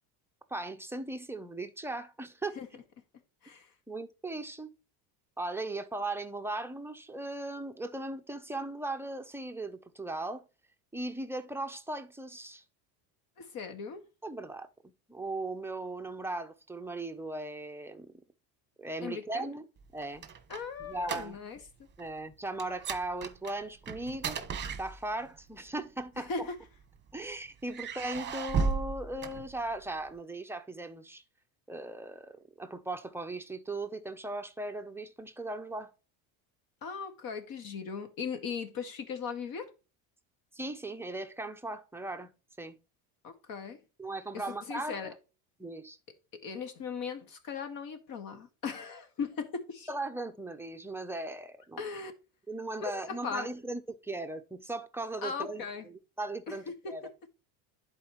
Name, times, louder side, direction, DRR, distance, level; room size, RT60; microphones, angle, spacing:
voice 1, 0.5-2.6 3.9-4.7 5.4-10.4 10.9-12.6 14.2-14.7 15.1-18.1 18.8-19.7 19.9-20.2 20.8-21.4 22.0-24.4 24.8-26.5 27.1-31.2 31.7-35.9 40.5-42.3 42.6-42.8 44.0-45.1 45.6-46.0 49.9-51.8 52.5-57.1, right 2 dB, 5° right, 0.6 m, -38 dB
voice 2, 13.4-14.0 19.0-19.5 20.5-21.6 26.2-26.6 36.8-39.7 43.2-43.8 44.3-45.1 46.3-49.9 51.8-52.1 52.8-53.5 55.2-55.9 56.5-56.6 56.8-56.9, left 5 dB, 55° left, 1.8 m, -38 dB
sound 1, 19.8-21.7 21.9-22.2 22.6-25.4 26.3-27.1 27.7-30.0, right 5 dB, 25° right, 1.0 m, -36 dB
11.0 x 4.3 x 3.0 m
cardioid pair, 130°, 42 cm